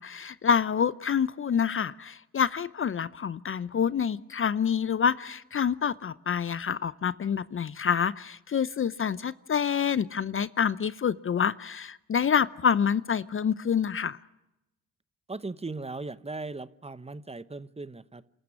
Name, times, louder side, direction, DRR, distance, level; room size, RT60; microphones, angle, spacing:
voice 1, 0.0-14.2, left 7 dB, 35° left, 0.7 m, -27 dB
voice 2, 15.3-18.2, right 3 dB, 15° right, 1.0 m, -38 dB
27.5 x 13.5 x 9.8 m
supercardioid pair, 65°, 36 cm